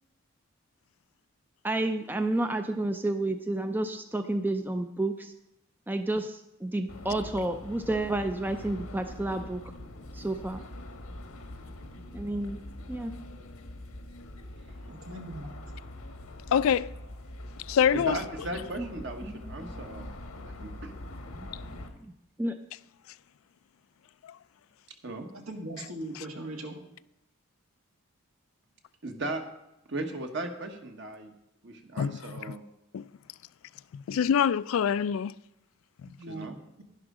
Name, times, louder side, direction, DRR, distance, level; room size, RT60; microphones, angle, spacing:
voice 1, 1.6-5.3 5.9-9.6 10.1-10.6 12.1-12.6 12.9-13.1 18.8-18.9 19.3-19.8 21.4-21.5 22.0-22.1 22.4-22.6, right 2 dB, 10° right, 0.4 m, -30 dB
sound 1, 6.9-21.9, left 1 dB, 90° left, 1.3 m, -43 dB
voice 2, 14.9-15.5 25.3-26.8 36.1-36.5 36.8-36.9, right 1 dB, 80° right, 1.9 m, -39 dB
voice 3, 16.5-16.9 17.7-18.2 32.0-32.2 32.5-32.6 32.9-33.1 33.9-35.3, left 8 dB, 70° left, 0.3 m, -25 dB
voice 4, 17.9-20.9 25.0-25.3 29.0-29.4 29.9-31.3 31.6-32.6 36.3-36.6, right 2 dB, 55° right, 1.3 m, -37 dB
11.0 x 11.0 x 3.8 m
head